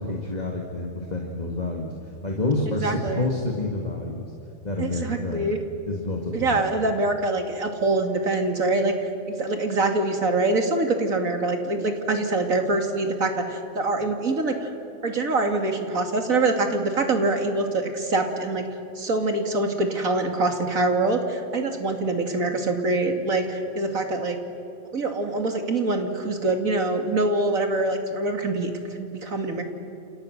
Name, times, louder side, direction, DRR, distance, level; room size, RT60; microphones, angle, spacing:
voice 1, 0.0-4.3 4.6-5.5 5.9-6.6, left 2 dB, 30° left, 0 dB, 2.3 m, -28 dB
voice 2, 2.8-3.3 4.8-5.6 6.3-14.7 15.0-18.7 19.0-24.4 24.9-29.6, right 2 dB, 75° right, 4 dB, 2.9 m, -24 dB
29.5 x 29.0 x 6.7 m, 2.9 s
omnidirectional pair, 1.4 m